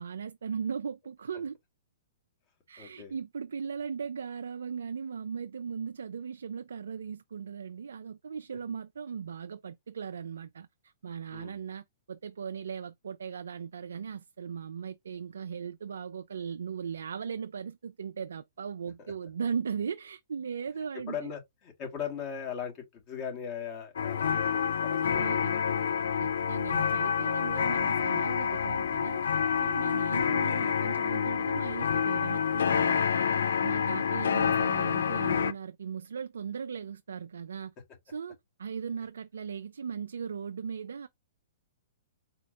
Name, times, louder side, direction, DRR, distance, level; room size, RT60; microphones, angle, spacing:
voice 1, 0.0-1.6 2.7-21.3 25.0-25.6 26.2-29.2 29.6-33.2 33.6-37.7 38.1-41.1, right 6 dB, 80° right, 0.4 m, -38 dB
voice 2, 2.8-3.1 11.3-11.6 21.1-25.9 29.8-30.1, left 7 dB, 35° left, 1.9 m, -39 dB
sound 1, 24.0-35.5, left 7 dB, 75° left, 0.4 m, -28 dB
4.2 x 2.7 x 3.0 m
hypercardioid pair, 135°, 0 cm